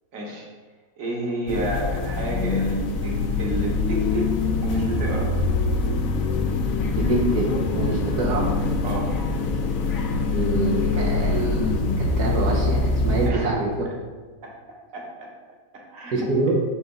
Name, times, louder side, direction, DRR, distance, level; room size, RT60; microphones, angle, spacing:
voice 1, 0.1-0.5 1.0-5.3 8.8-9.1 13.2-13.5 14.4-14.5 14.9-15.3 15.7-16.6, right 2 dB, 60° right, -2 dB, 1.5 m, -31 dB
sound 1, 1.5-13.3, left 3 dB, 65° left, 1.0 m, -24 dB
voice 2, 6.9-8.5 10.3-13.7 16.1-16.6, right 2 dB, 85° right, -2 dB, 1.5 m, -26 dB
6.4 x 4.9 x 3.7 m, 1.4 s
omnidirectional pair, 1.7 m